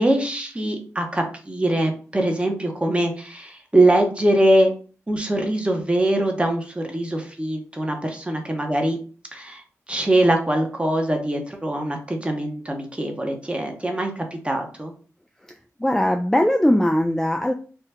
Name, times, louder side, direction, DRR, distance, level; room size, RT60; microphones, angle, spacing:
voice 1, 0.0-4.7 5.1-9.0 9.3-9.6 9.9-14.9, right 1 dB, 20° right, 3 dB, 1.0 m, -22 dB
voice 2, 15.8-17.5, left 1 dB, 5° left, 4 dB, 0.4 m, -19 dB
2.8 x 2.3 x 3.4 m, 0.39 s
cardioid pair, 45°, 6 cm